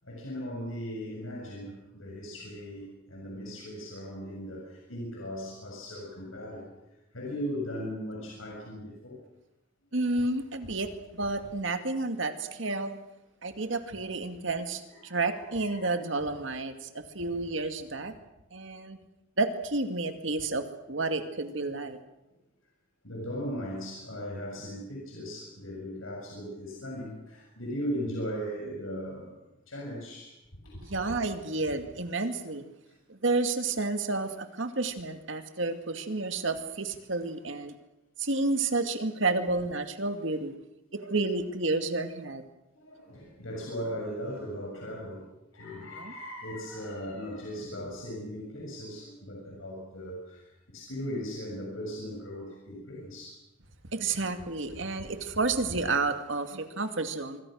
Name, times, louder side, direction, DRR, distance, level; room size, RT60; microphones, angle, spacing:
voice 1, 0.0-6.7 7.1-9.2 14.9-15.3 15.6-15.9 23.0-30.3 30.6-31.0 42.7-45.3 45.5-53.4 55.0-55.1, equal, 90° left, -1 dB, 7.0 m, -38 dB
voice 2, 9.9-13.0 13.4-18.1 18.5-19.0 19.4-22.0 30.8-32.6 33.1-37.7 38.2-40.5 40.9-42.4 45.9-46.1 53.9-57.4, right 3 dB, 70° right, 7 dB, 2.3 m, -30 dB
26.0 x 24.0 x 6.4 m, 0.90 s
head